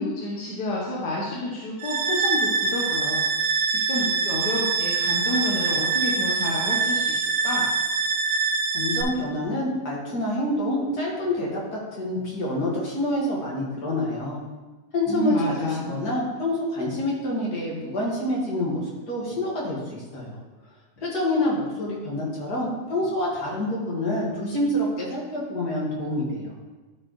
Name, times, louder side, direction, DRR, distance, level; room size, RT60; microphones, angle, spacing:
voice 1, 0.0-3.2 3.7-7.7 15.1-16.0, left 1 dB, 90° left, -4 dB, 1.6 m, -29 dB
sound 1, 1.8-9.0, right 4 dB, 70° right, 1.3 m, -24 dB
voice 2, 8.7-14.4 14.9-20.4 21.0-26.5, left 1 dB, 75° left, -4 dB, 2.3 m, -27 dB
12.0 x 4.7 x 3.0 m, 1.2 s
omnidirectional pair, 1.7 m